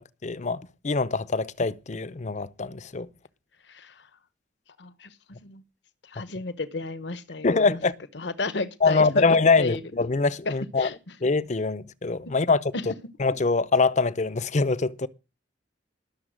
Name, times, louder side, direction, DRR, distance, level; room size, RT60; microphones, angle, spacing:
voice 1, 0.2-3.1 7.4-7.9 8.8-10.9 11.2-12.6 13.2-15.1, left 4 dB, 40° left, 0.6 m, -23 dB
voice 2, 3.6-4.1 4.8-5.2 5.4-5.6 6.0-7.8 8.1-9.8 10.5-11.0 12.7-12.8, left 3 dB, 70° left, 1.0 m, -33 dB
19.5 x 6.9 x 6.4 m
head